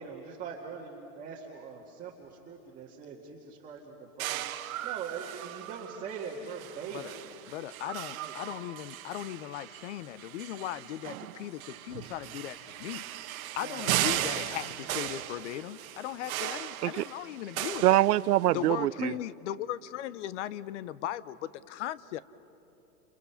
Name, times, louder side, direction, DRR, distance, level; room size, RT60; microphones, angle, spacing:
voice 1, 0.0-7.2 8.1-8.3 13.6-13.8 14.2-14.4, right 6 dB, 15° right, -4 dB, 1.7 m, -42 dB
sound 1, 4.2-18.7, right 13 dB, 65° right, 1.3 m, -37 dB
voice 2, 7.5-13.0 13.5-18.0 18.5-22.2, left 13 dB, 50° left, 18 dB, 0.8 m, -38 dB
voice 3, 17.8-19.1, right 15 dB, 80° right, 20 dB, 0.7 m, -24 dB
30.0 x 29.0 x 5.7 m, 2.9 s
supercardioid pair, 155°, 46 cm